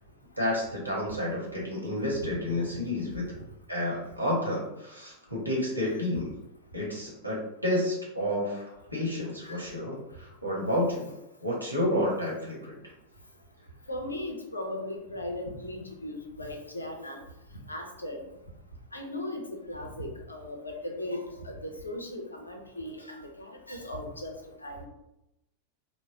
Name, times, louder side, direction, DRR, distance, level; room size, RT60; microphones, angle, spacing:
voice 1, 0.4-3.3 3.7-6.3 6.7-10.0 10.4-11.1 11.4-12.7, left 1 dB, 90° right, -4 dB, 1.2 m, -30 dB
voice 2, 13.9-17.2 17.7-18.2 18.9-24.8, left 1 dB, 80° left, 2 dB, 0.7 m, -38 dB
4.1 x 2.2 x 3.6 m, 0.89 s
figure-of-eight pair, 90°, 0 cm